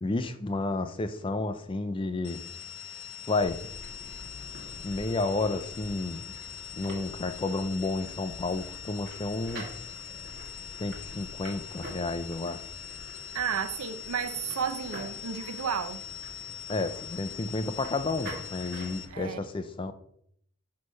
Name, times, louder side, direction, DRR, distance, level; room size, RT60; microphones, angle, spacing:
voice 1, 0.0-2.4 3.3-3.7 4.8-6.3 6.7-9.7 10.8-12.7 16.7-19.9, left 3 dB, 25° left, 0.3 m, -31 dB
sound 1, 2.2-19.1, left 9 dB, 55° left, 0.7 m, -43 dB
sound 2, 3.3-19.2, equal, 45° right, 1.8 m, -46 dB
voice 2, 13.3-16.0 19.1-19.4, right 7 dB, 80° right, 0.5 m, -32 dB
6.2 x 3.2 x 5.4 m
head